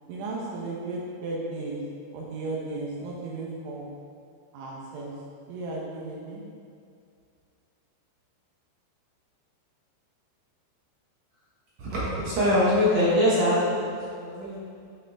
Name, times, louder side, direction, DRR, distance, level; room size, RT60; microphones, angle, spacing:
voice 1, 0.1-1.8 2.1-3.9 4.5-5.1 5.5-6.4, right 2 dB, 85° right, -4 dB, 3.5 m, -34 dB
voice 2, 11.8-14.6, left 1 dB, 65° right, -8 dB, 1.7 m, -23 dB
9.6 x 6.0 x 3.6 m, 2.3 s
omnidirectional pair, 5.2 m